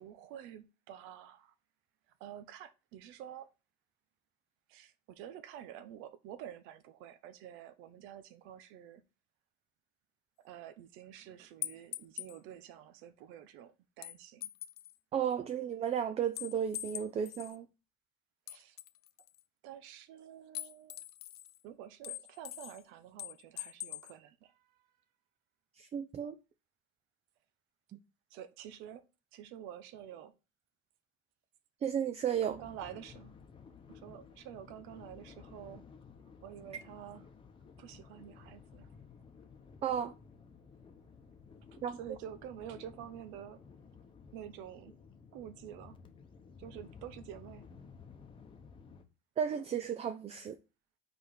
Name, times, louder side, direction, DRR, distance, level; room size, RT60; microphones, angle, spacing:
voice 1, 0.0-1.5 2.2-3.5 4.7-9.0 10.4-14.5 18.5-18.8 19.6-21.0 21.6-24.8 28.3-29.0 29.3-30.3 32.4-33.4 33.9-35.8 36.4-37.2 37.8-38.9 41.9-43.6 44.3-45.0 45.3-46.0 46.6-47.7, right 10 dB, 85° right, 0.9 m, -49 dB
sound 1, 11.6-12.4 14.0-14.9 16.4-17.6 18.5-19.4 20.5-21.6 22.0-22.8 23.2-24.1, left 14 dB, 55° left, 0.5 m, -43 dB
voice 2, 15.1-17.7 25.8-26.3 27.9-28.0 31.8-32.6 39.8-40.1 41.8-42.0 49.4-50.6, right 8 dB, 30° right, 0.5 m, -33 dB
sound 2, 32.5-49.0, left 5 dB, 25° left, 0.8 m, -55 dB
4.8 x 4.3 x 5.0 m
cardioid pair, 140°, 20 cm